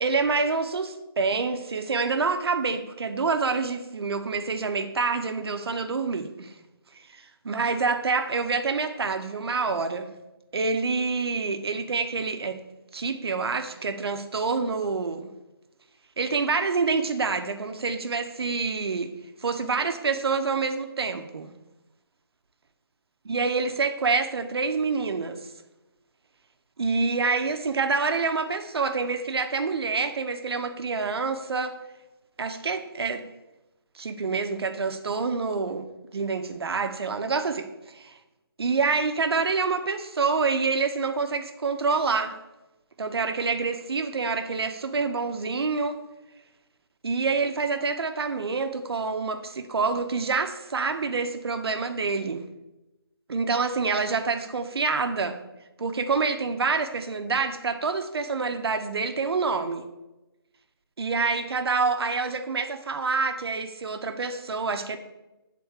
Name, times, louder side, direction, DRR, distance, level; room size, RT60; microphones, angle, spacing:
voice 1, 0.0-6.5 7.1-10.1 10.5-12.6 12.9-15.3 16.2-19.1 19.4-21.5 23.2-25.5 26.8-31.8 32.4-33.2 33.9-38.1 38.6-42.4 43.0-46.0 47.0-52.5 53.3-55.4 55.8-59.9 61.0-65.0, right 4 dB, 80° right, 7 dB, 0.7 m, -27 dB
8.0 x 3.8 x 3.5 m, 1.0 s
hypercardioid pair, 180°, 13 cm